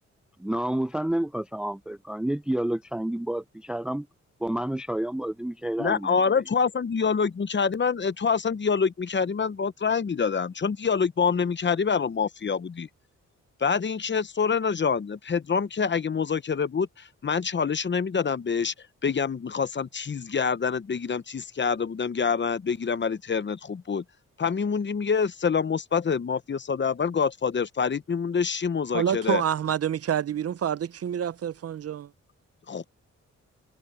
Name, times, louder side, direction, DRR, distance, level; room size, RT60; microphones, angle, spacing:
voice 1, 0.4-4.1 4.4-6.2, right 1 dB, 5° right, 0.5 m, -29 dB
voice 2, 5.8-12.9 13.6-18.7 19.0-24.0 24.4-29.4 32.7-32.9, left 6 dB, 40° left, 0.9 m, -26 dB
voice 3, 28.9-32.1, right 9 dB, 55° right, 0.6 m, -27 dB
cardioid pair, 95°, 29 cm